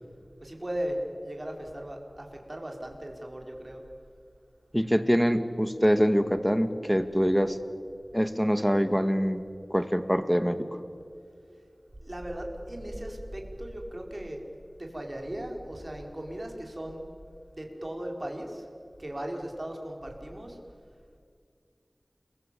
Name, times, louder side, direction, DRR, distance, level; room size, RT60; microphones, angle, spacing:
voice 1, 0.4-3.8 12.0-14.4 14.8-17.1 17.5-18.6 19.0-20.6, right 1 dB, 40° right, 1 dB, 5.0 m, -37 dB
voice 2, 4.7-7.6 8.1-9.4 9.7-10.7, equal, ahead, 9 dB, 1.9 m, -24 dB
29.5 x 22.5 x 8.5 m, 2.3 s
wide cardioid pair, 45°, 0 cm